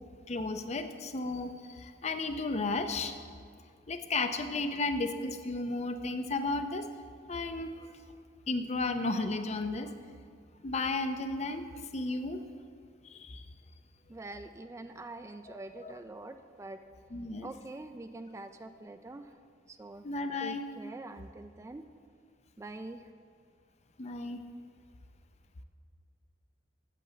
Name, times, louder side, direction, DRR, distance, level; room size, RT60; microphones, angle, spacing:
voice 1, 0.3-3.2 3.9-6.9 7.3-7.8 8.5-9.9 10.6-11.7 11.9-12.5 13.0-13.4 15.5-15.9 17.1-17.5 20.0-20.6 24.0-24.4, left 3 dB, 40° left, 8 dB, 0.6 m, -33 dB
voice 2, 14.1-16.8 17.4-19.3 19.7-20.1 20.4-21.8 22.6-23.1, right 2 dB, 15° right, 8 dB, 0.3 m, -45 dB
8.4 x 6.9 x 7.7 m, 2.2 s
head